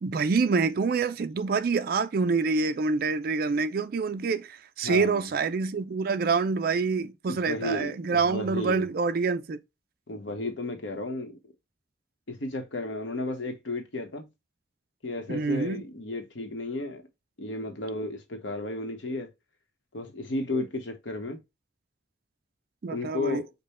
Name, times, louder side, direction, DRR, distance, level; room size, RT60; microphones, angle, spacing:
voice 1, 0.0-9.6 15.3-15.8 22.8-23.4, right 4 dB, 50° right, 0.4 m, -26 dB
voice 2, 4.8-5.3 7.3-8.9 10.1-11.4 12.3-14.3 15.0-17.0 17.4-19.3 19.9-21.4 22.9-23.5, left 2 dB, 80° left, 1.0 m, -33 dB
5.3 x 2.2 x 4.1 m
head